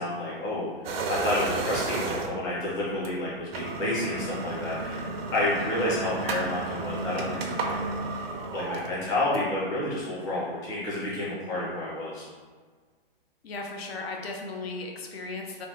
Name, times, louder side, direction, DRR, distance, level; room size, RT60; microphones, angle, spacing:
voice 1, 0.0-5.1 5.3-7.9 8.5-12.2, left 1 dB, 10° left, -8 dB, 0.4 m, -30 dB
sound 1, 0.8-2.5 3.0-3.1 3.4-9.6, right 3 dB, 80° right, 0.5 m, -33 dB
voice 2, 13.4-15.7, left 3 dB, 90° left, 1 dB, 0.7 m, -36 dB
3.3 x 2.1 x 2.7 m, 1.5 s
hypercardioid pair, 155°, 30 cm